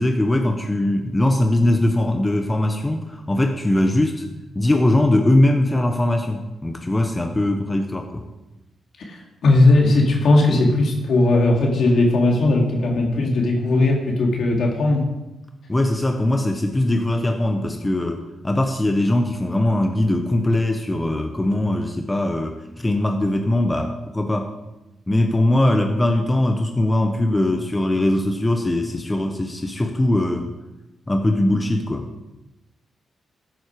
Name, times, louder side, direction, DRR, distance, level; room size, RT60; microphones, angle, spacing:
voice 1, 0.0-4.3 4.5-8.2 15.7-24.5 25.1-30.5 31.1-32.3, left 1 dB, 20° left, 4 dB, 1.1 m, -21 dB
voice 2, 9.0-15.0, left 2 dB, 70° left, -1 dB, 3.0 m, -18 dB
13.5 x 7.9 x 4.9 m, 1.0 s
cardioid pair, 80°, 0 cm